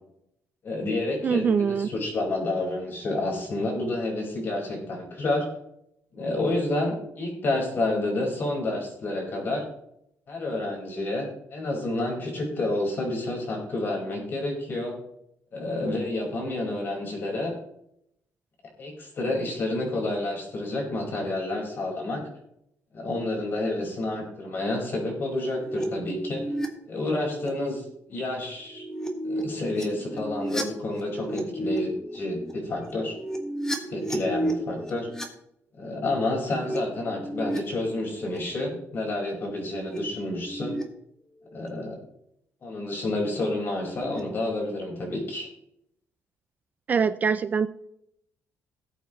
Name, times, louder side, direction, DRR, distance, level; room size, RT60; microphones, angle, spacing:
voice 1, 0.6-5.5 6.1-9.6 10.3-14.9 15.5-17.5 18.8-22.2 22.9-26.4 26.9-28.8 29.2-33.1 33.9-35.1 35.8-40.8 41.5-42.0 42.6-45.5, left 2 dB, 40° left, -1 dB, 4.8 m, -29 dB
voice 2, 1.2-1.9 46.9-47.7, right 6 dB, 30° right, 12 dB, 0.4 m, -23 dB
sound 1, 25.2-26.7 27.0-27.5 28.5-35.3 36.1-37.6 37.9-38.4 39.4-40.0 40.2-40.8 41.5-41.7 43.0-43.4 43.8-44.2, right 1 dB, 10° left, 1.7 m, -33 dB
18.5 x 8.2 x 3.1 m, 0.76 s
cardioid pair, 165°, 6 cm